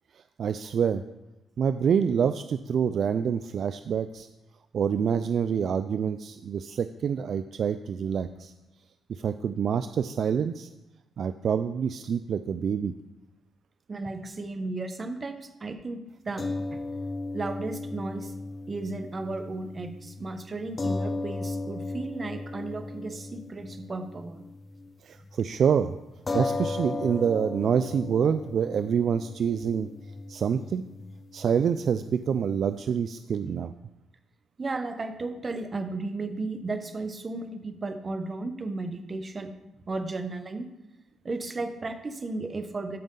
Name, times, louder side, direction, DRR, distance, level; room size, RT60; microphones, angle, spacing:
voice 1, 0.4-1.0 1.6-4.3 4.7-8.5 9.1-10.7 11.2-12.9 25.0-25.9 26.3-29.9 30.3-30.8 31.3-33.7, right 7 dB, 60° right, 11 dB, 0.3 m, -26 dB
voice 2, 13.9-16.0 16.2-16.5 17.3-18.3 18.7-24.4 34.6-39.5 39.9-40.7 41.2-43.0, right 3 dB, 35° right, 7 dB, 1.0 m, -34 dB
sound 1, 16.4-24.9 25.2-25.4 26.3-32.8, left 3 dB, 30° left, 0.7 m, -36 dB
13.0 x 5.1 x 3.8 m, 0.98 s
cardioid pair, 90°, 0 cm